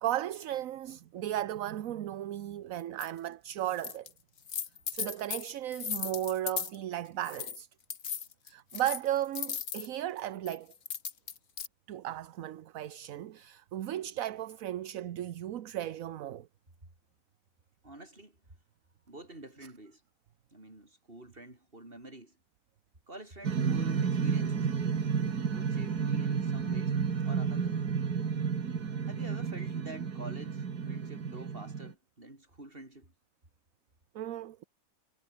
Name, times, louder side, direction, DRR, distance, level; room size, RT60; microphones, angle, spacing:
voice 1, 0.0-4.1 4.9-7.7 8.5-10.7 11.9-16.5 34.1-34.6, right 12 dB, 65° right, 1.1 m, -35 dB
sound 1, 3.0-3.1 3.7-4.1 4.4-6.8 7.2-7.6 7.9-9.9 10.5-11.7, left 7 dB, 70° left, 2.0 m, -37 dB
voice 2, 17.8-18.4 19.1-20.0 20.5-22.4 23.1-24.7 25.5-27.0 27.3-27.8 29.1-33.1, right 1 dB, 35° right, 5.6 m, -48 dB
sound 2, 23.4-31.9, right 6 dB, 85° right, 2.4 m, -31 dB
omnidirectional pair, 1.6 m